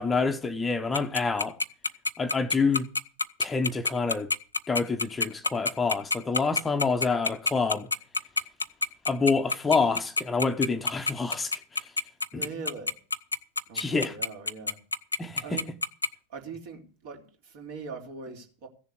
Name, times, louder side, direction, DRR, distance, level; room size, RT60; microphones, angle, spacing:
voice 1, 0.0-1.6 2.2-2.9 3.4-4.3 4.7-7.9 9.1-11.9 12.3-12.5 13.7-14.2 15.2-15.6, left 4 dB, 15° left, 1.0 m, -27 dB
Tick-tock, 0.9-16.1, left 4 dB, 80° left, 0.7 m, -26 dB
voice 2, 12.3-12.9 13.7-14.8 15.4-15.7 16.3-18.7, right 4 dB, 50° right, 3.3 m, -41 dB
15.5 x 7.1 x 8.1 m
figure-of-eight pair, 90°, 0 cm